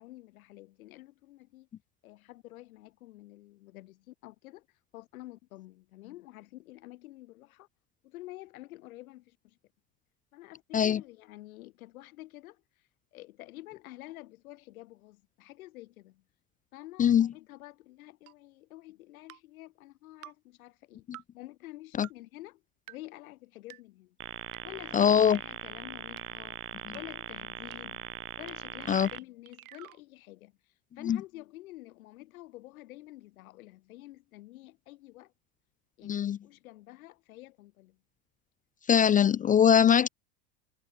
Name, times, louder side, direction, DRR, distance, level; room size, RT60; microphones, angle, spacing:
voice 1, 0.0-1.7 2.0-4.7 4.9-7.7 8.0-9.6 10.3-16.2 16.7-21.1 21.3-22.6 22.9-24.2 24.6-26.6 26.9-28.1 28.4-35.3 36.0-38.0, left 17 dB, 85° left, 6.4 m, -49 dB
sound 1, 18.3-18.4 19.3-19.4 20.2-20.3 21.1-21.2 22.0-22.1 22.9-23.0 23.7-23.8 24.5-24.6 25.4-25.5 26.2-26.3 26.9-27.0 27.7-27.8 28.5-28.6 28.8-30.0, right 15 dB, 90° right, 4.7 m, -48 dB
sound 2, 24.2-29.2, right 10 dB, 30° right, 1.5 m, -41 dB
voice 2, 24.9-25.4 28.9-29.1 31.1-31.2 36.0-36.4 38.9-40.1, left 8 dB, 20° left, 0.4 m, -22 dB
supercardioid pair, 110°, 41 cm